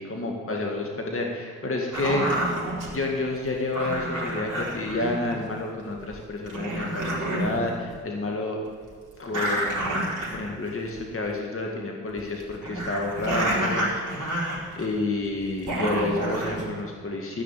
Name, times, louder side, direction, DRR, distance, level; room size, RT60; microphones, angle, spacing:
voice 1, 0.0-2.5 2.9-8.6 9.2-13.9 14.8-17.4, left 2 dB, 35° left, 1 dB, 2.0 m, -29 dB
sound 1, 1.9-2.9 3.7-5.5 6.1-6.2 6.5-7.6 7.9-8.0 9.3-10.7 11.0-11.1 12.2-15.1 15.4-16.7, right 1 dB, 50° right, 4.3 m, -29 dB
13.5 x 6.0 x 9.1 m, 2.1 s
hypercardioid pair, 40°, 40 cm